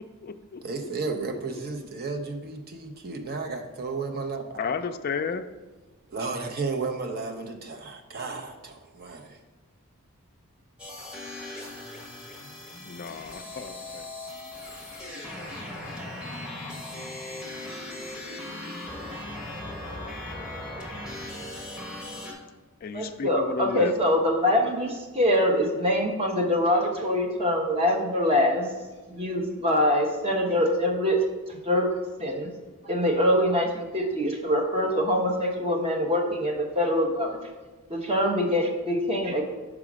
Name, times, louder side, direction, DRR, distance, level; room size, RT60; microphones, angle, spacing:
voice 1, 0.0-0.6 4.6-5.4 12.8-14.1 22.8-23.9, left 5 dB, 45° left, 7 dB, 0.3 m, -33 dB
voice 2, 0.6-4.6 6.1-9.4, right 4 dB, 45° right, 5 dB, 0.7 m, -33 dB
sound 1, 10.8-22.3, left 1 dB, 5° right, 1.1 m, -38 dB
voice 3, 22.9-28.7 29.1-31.2 31.5-31.9 32.2-32.5 32.8-37.4 37.9-39.4, left 1 dB, 25° right, 1 dB, 1.0 m, -24 dB
4.9 x 4.8 x 6.1 m, 1.2 s
head